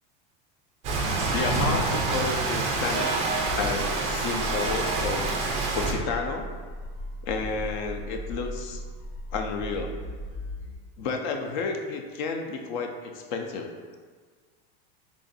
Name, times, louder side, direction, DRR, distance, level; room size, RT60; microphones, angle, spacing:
Rain, 0.8-5.9, right 3 dB, 25° right, 0.3 m, -27 dB
voice 1, 1.3-3.3 3.6-5.3 5.7-6.5 7.2-8.8 9.3-9.9 11.0-13.7, left 4 dB, 55° left, 4 dB, 0.5 m, -31 dB
sound 1, 3.4-10.7, equal, 80° left, 1.2 m, -37 dB
3.7 x 2.4 x 3.9 m, 1.5 s
supercardioid pair, 175°, 29 cm